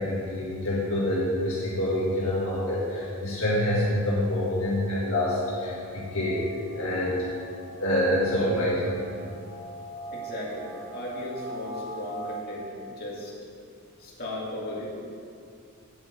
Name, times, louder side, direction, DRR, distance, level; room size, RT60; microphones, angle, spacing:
voice 1, 0.0-6.4 6.7-7.2 7.8-8.9, left 1 dB, 65° left, -7 dB, 1.8 m, -26 dB
sound 1, 1.5-12.4, equal, 45° right, 2.7 m, -43 dB
voice 2, 10.1-13.4 14.0-14.9, left 1 dB, 45° left, -5 dB, 2.5 m, -36 dB
7.4 x 7.3 x 8.0 m, 2.4 s
head